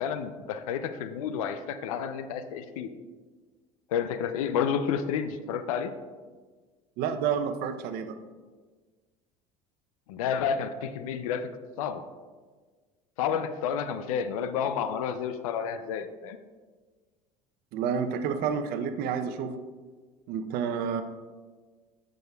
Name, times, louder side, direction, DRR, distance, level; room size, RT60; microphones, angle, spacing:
voice 1, 0.0-2.9 3.9-5.9 10.1-12.0 13.2-16.4, left 7 dB, 85° left, 11 dB, 0.4 m, -30 dB
voice 2, 7.0-8.2 17.7-19.6 20.3-21.0, right 7 dB, 65° right, 9 dB, 0.6 m, -29 dB
9.3 x 6.3 x 2.3 m, 1.4 s
hypercardioid pair, 80°, 17 cm